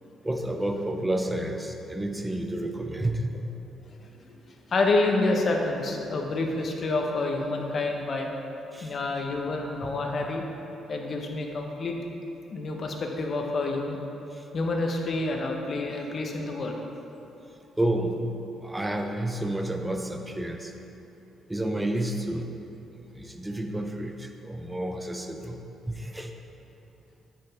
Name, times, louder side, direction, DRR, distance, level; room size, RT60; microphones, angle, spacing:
voice 1, 0.2-3.2 8.7-8.9 9.8-9.9 14.3-14.5 17.8-20.7 21.5-26.3, right 1 dB, 10° right, 4 dB, 0.8 m, -30 dB
voice 2, 4.0-4.4 4.7-8.3 8.8-10.4 10.9-12.0 12.5-14.0 14.5-16.8, left 2 dB, 45° left, 1 dB, 1.2 m, -28 dB
9.6 x 7.9 x 3.6 m, 2.9 s
cardioid pair, 90°, 0 cm